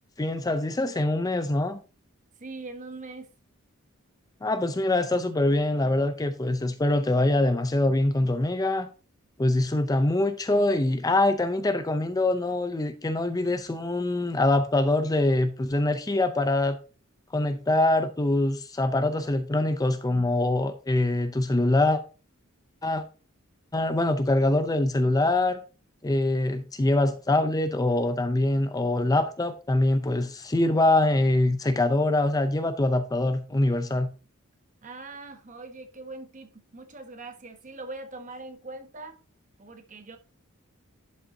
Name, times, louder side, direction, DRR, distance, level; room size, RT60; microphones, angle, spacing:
voice 1, 0.2-1.8 4.4-8.9 9.4-16.8 17.3-22.0 22.8-23.0 23.7-25.6 26.0-34.1, left 2 dB, 15° left, 0.5 m, -24 dB
voice 2, 2.4-3.3 34.8-39.2 39.6-40.2, right 3 dB, 35° right, 0.9 m, -41 dB
11.0 x 5.4 x 2.7 m
head